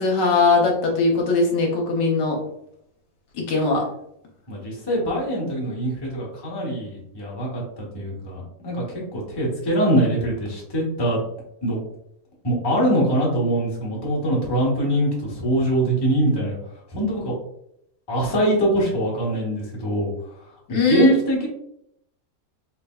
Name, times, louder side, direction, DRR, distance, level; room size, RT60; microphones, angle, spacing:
voice 1, 0.0-2.4 3.5-3.8 20.7-21.2, left 3 dB, 75° left, -1 dB, 1.5 m, -20 dB
voice 2, 4.5-11.2 11.6-11.8 12.4-16.6 16.9-17.3 18.1-20.1 20.4-21.5, equal, 15° left, -3 dB, 1.0 m, -23 dB
4.1 x 3.3 x 2.3 m, 0.74 s
omnidirectional pair, 1.9 m